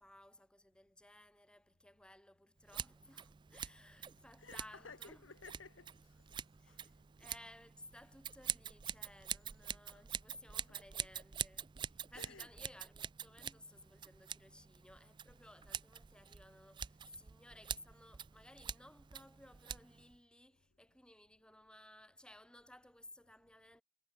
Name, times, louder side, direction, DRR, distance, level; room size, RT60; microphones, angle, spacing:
voice 1, 0.0-5.3 6.6-6.9 7.2-23.8, left 1 dB, 5° left, 2.0 m, -59 dB
Scissors, 2.7-20.2, right 9 dB, 25° right, 0.3 m, -46 dB
voice 2, 4.4-6.4 6.7-6.9 10.7-10.8 12.1-12.5, left 4 dB, 85° left, 1.7 m, -56 dB
head